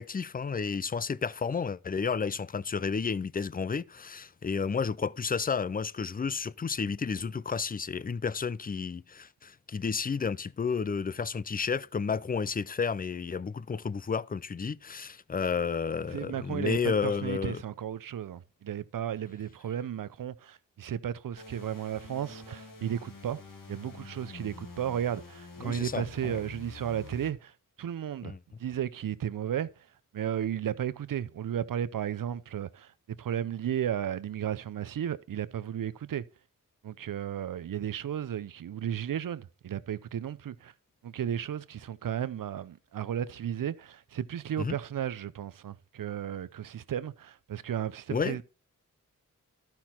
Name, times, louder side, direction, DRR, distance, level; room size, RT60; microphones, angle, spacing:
voice 1, 0.0-17.6 25.6-26.4 28.2-28.4 44.6-44.8 48.1-48.4, left 5 dB, 25° left, 0.5 m, -31 dB
voice 2, 16.1-23.4 23.7-27.5 27.8-28.3 28.6-29.7 30.1-36.2 36.8-40.7 41.0-48.4, right 10 dB, 80° right, 0.6 m, -34 dB
sound 1, 21.4-27.3, left 4 dB, 75° left, 2.4 m, -47 dB
12.5 x 5.9 x 4.4 m
cardioid pair, 65°, 33 cm